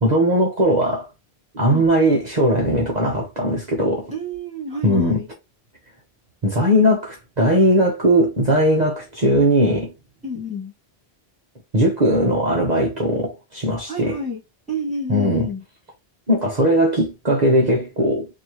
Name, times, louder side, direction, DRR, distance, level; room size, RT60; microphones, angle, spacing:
voice 1, 0.0-1.1 1.5-4.1 4.8-5.2 6.4-9.9 11.7-14.2 15.1-15.5 16.3-18.3, equal, 40° right, 1.2 m, -19 dB
voice 2, 4.1-5.3 10.2-10.7 13.9-14.4 14.7-15.6, left 1 dB, 5° left, 2.1 m, -29 dB
4.2 x 2.8 x 3.0 m
omnidirectional pair, 1.1 m